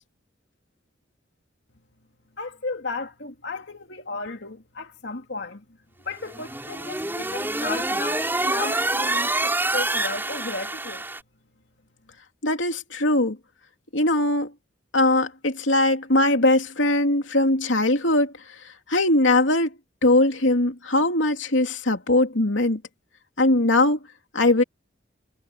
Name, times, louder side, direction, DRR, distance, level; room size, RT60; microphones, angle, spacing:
voice 1, 2.4-5.6 6.1-11.0, left 3 dB, 65° left, 2.5 m, -34 dB
sound 1, 6.2-11.2, right 2 dB, 10° right, 6.4 m, -26 dB
voice 2, 12.4-13.4 13.9-14.5 14.9-18.3 18.9-19.7 20.0-22.8 23.4-24.0 24.3-24.6, left 2 dB, 90° left, 2.9 m, -20 dB
head